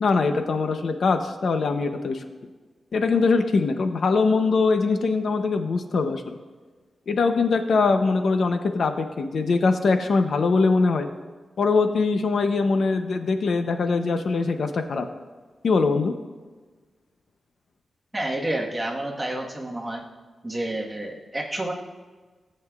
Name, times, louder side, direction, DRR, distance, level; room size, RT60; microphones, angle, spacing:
voice 1, 0.0-2.2 2.9-6.4 7.1-11.1 11.6-15.1 15.6-16.1, left 4 dB, 65° left, 7 dB, 0.6 m, -22 dB
voice 2, 18.1-20.0 20.4-21.7, right 1 dB, 15° right, -1 dB, 1.3 m, -29 dB
17.0 x 7.7 x 2.4 m, 1.4 s
wide cardioid pair, 125°, 0 cm